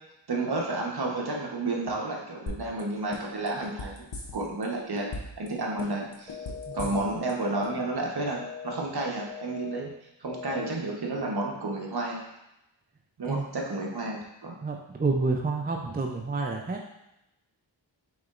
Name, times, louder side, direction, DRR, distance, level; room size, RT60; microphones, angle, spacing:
voice 1, 0.3-4.0 4.3-5.1 5.4-6.4 6.7-9.9 10.2-12.2 13.2-14.6, right 2 dB, 55° right, -1 dB, 1.1 m, -31 dB
sound 1, 2.5-2.8 3.1-4.6 5.0-5.5 5.8-7.3 7.6-7.7, left 2 dB, 60° left, 0.8 m, -37 dB
sound 2, 6.3-6.8 7.3-7.8 8.3-8.8 9.3-9.8 10.3-10.8, left 7 dB, 15° left, 0.8 m, -40 dB
voice 2, 14.6-16.9, right 3 dB, 20° right, 2 dB, 0.4 m, -29 dB
4.9 x 3.9 x 2.5 m, 0.88 s
cardioid pair, 40°, 47 cm